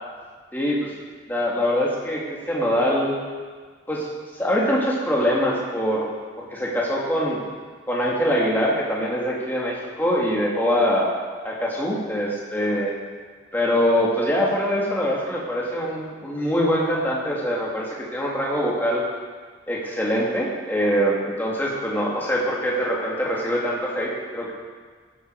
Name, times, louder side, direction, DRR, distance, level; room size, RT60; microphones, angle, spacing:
voice 1, 0.5-0.9 1.3-3.1 3.9-4.1 4.4-6.1 6.4-7.4 7.9-11.1 11.4-12.9 13.5-19.0 19.7-24.5, equal, 10° left, -4 dB, 2.3 m, -23 dB
14.5 x 11.0 x 4.8 m, 1.5 s
head